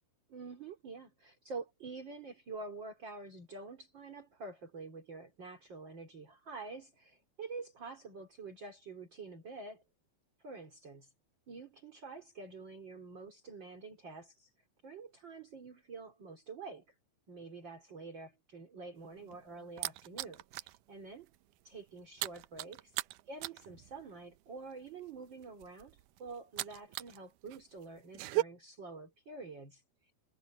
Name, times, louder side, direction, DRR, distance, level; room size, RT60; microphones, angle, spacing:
voice 1, 0.3-9.8 10.4-11.1 11.5-14.5 14.8-16.9 17.3-21.3 21.6-22.9 23.3-30.1, right 4 dB, 30° right, 3.7 m, -47 dB
sound 1, 19.0-20.8 21.1-21.4 21.6-27.2 27.5-28.4, right 18 dB, 80° right, 1.9 m, -38 dB
omnidirectional pair, 4.3 m